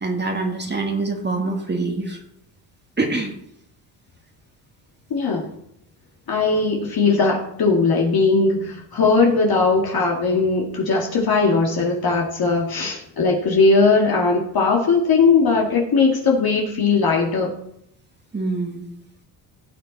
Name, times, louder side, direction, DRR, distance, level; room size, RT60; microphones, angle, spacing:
voice 1, 0.0-2.2 3.0-3.3 18.3-18.8, right 3 dB, 20° right, 2 dB, 1.7 m, -25 dB
voice 2, 5.1-5.5 6.3-17.5, left 4 dB, 50° left, -1 dB, 2.1 m, -19 dB
16.5 x 6.7 x 4.1 m, 0.77 s
supercardioid pair, 80°, 46 cm